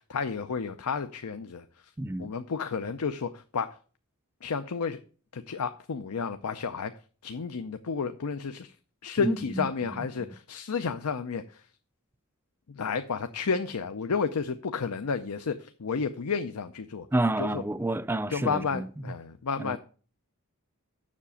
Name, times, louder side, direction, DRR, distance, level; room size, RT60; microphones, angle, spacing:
voice 1, 0.0-1.6 2.2-3.8 4.4-5.0 5.3-6.9 7.2-8.7 9.0-11.4 12.8-17.1 17.4-17.6 18.3-19.8, left 5 dB, 90° left, 0.6 m, -31 dB
voice 2, 2.0-2.3 9.2-10.3 17.1-18.9 19.6-19.8, right 1 dB, 10° right, 0.3 m, -30 dB
7.4 x 6.7 x 6.9 m
head